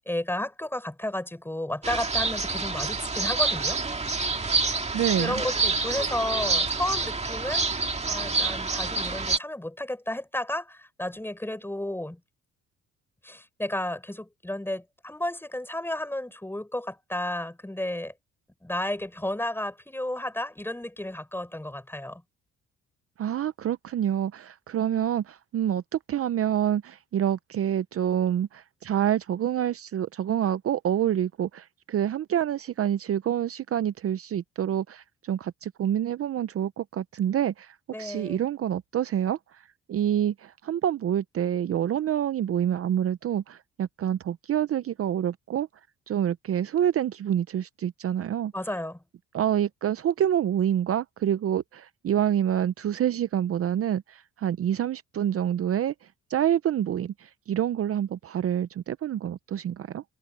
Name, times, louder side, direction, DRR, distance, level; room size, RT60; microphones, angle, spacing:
voice 1, 0.1-3.8 5.2-12.2 13.2-18.1 18.6-22.2 37.9-38.4 48.5-49.0, left 1 dB, 5° left, 5.7 m, -32 dB
sound 1, 1.8-9.4, right 3 dB, 20° right, 2.1 m, -27 dB
voice 2, 4.9-5.3 23.2-45.7 46.1-48.5 49.3-55.9 56.3-60.0, right 10 dB, 50° right, 0.6 m, -27 dB
cardioid pair, 90°, 30 cm